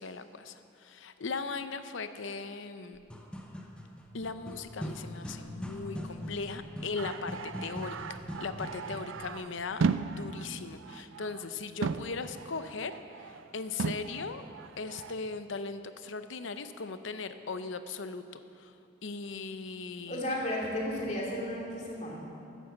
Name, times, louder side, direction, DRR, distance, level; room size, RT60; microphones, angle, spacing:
voice 1, 0.0-3.0 4.1-12.9 13.5-14.4 14.8-18.2 18.6-18.7 19.0-20.2, left 4 dB, 75° left, 10 dB, 0.7 m, -38 dB
sound 1, 2.9-9.2, equal, 5° left, 0.8 m, -42 dB
sound 2, 7.0-11.5 11.8-13.5 13.8-15.1, right 5 dB, 80° right, 0.4 m, -36 dB
voice 2, 20.1-22.2, left 1 dB, 35° left, -3 dB, 2.5 m, -33 dB
12.5 x 9.9 x 7.3 m, 2.6 s
head